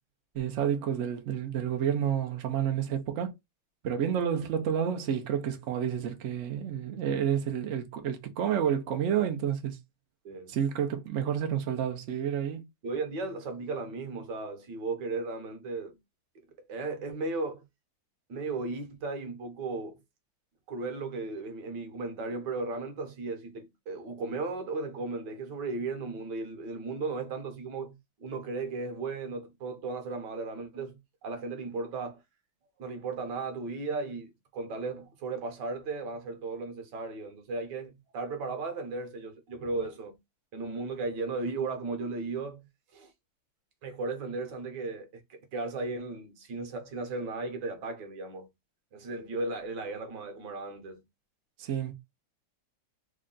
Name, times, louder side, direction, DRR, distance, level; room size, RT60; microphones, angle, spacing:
voice 1, 0.3-3.3 3.8-9.8 10.5-12.6 51.6-51.9, right 9 dB, 80° right, 0.6 m, -30 dB
voice 2, 10.2-10.6 12.8-16.0 16.6-17.6 18.3-20.0 20.7-32.2 32.8-40.2 40.5-42.6 42.9-43.1 43.8-48.5 48.9-51.0, right 3 dB, 60° right, 1.4 m, -36 dB
3.6 x 2.2 x 3.7 m
omnidirectional pair, 2.3 m